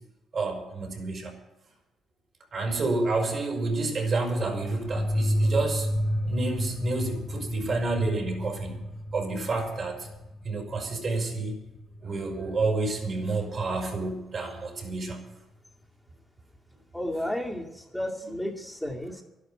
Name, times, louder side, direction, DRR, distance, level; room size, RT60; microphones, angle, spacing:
voice 1, 0.3-1.3 2.5-5.9 6.3-8.8 9.1-10.1 10.4-11.6 12.0-15.3, right 3 dB, 45° right, 3 dB, 5.2 m, -29 dB
sound 1, 4.4-12.8, equal, 35° left, 1.6 m, -31 dB
voice 2, 16.9-19.2, left 1 dB, ahead, -3 dB, 2.3 m, -32 dB
12.0 x 11.5 x 9.2 m, 0.98 s
cardioid pair, 90°, 0 cm